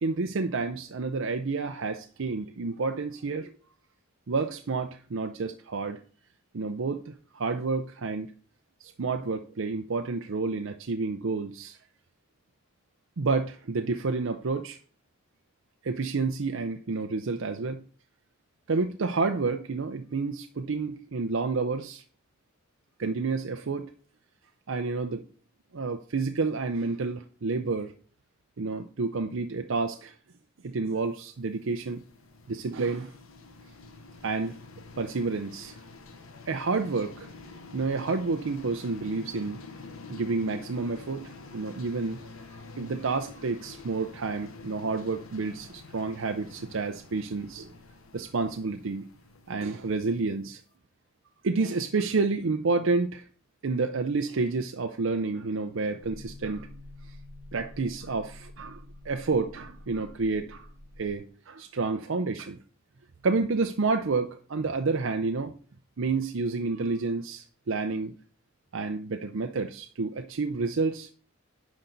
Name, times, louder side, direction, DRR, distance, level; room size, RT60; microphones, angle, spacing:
voice 1, 0.0-3.5 4.3-6.0 6.5-8.3 8.8-11.8 13.2-14.8 15.8-17.8 18.7-22.0 23.0-23.9 24.7-25.2 25.7-27.9 28.6-30.1 30.6-32.0 32.5-33.1 34.2-34.5 35.0-35.7 36.5-37.3 37.7-39.6 40.1-42.2 42.8-47.7 48.1-49.0 49.5-50.6 51.4-53.2 53.6-56.7 57.5-60.7 61.0-62.6 63.2-65.5 66.0-68.1 68.7-71.1, right 4 dB, 70° right, 6 dB, 0.6 m, -29 dB
sound 1, 31.4-50.4, left 3 dB, 85° left, 1.1 m, -47 dB
sound 2, 56.0-61.2, left 1 dB, 35° left, 2.8 m, -48 dB
9.9 x 5.3 x 3.9 m, 0.40 s
head